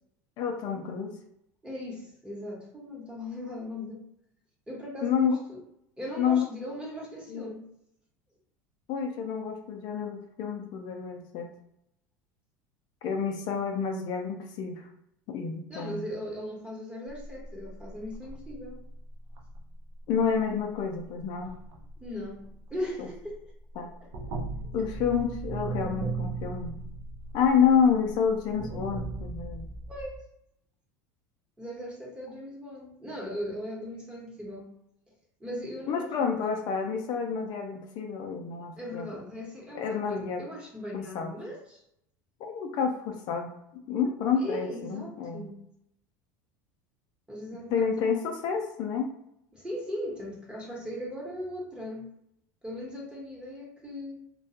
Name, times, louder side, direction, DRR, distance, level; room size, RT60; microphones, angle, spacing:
voice 1, 0.4-1.2 5.0-5.4 6.2-6.4 7.3-7.5 8.9-11.5 13.0-14.9 15.3-16.1 20.1-21.5 23.0-23.1 23.8-23.9 24.7-26.8 27.3-29.7 35.9-39.1 39.7-40.4 40.9-41.3 42.4-43.5 43.9-45.5 47.7-49.1, left 6 dB, 55° left, 3 dB, 0.4 m, -29 dB
voice 2, 1.6-4.0 4.7-5.6 6.0-7.7 15.7-18.8 22.0-22.4 22.7-23.4 24.0-24.3 29.9-30.2 31.6-34.7 35.4-36.3 38.8-41.8 44.4-45.6 47.3-48.1 49.5-52.1 52.6-54.2, equal, 10° right, -3 dB, 1.0 m, -38 dB
sound 1, 17.1-23.4 23.7-30.2, right 3 dB, 55° right, 0.6 m, -38 dB
2.3 x 2.2 x 2.8 m, 0.76 s
supercardioid pair, 95°, 9 cm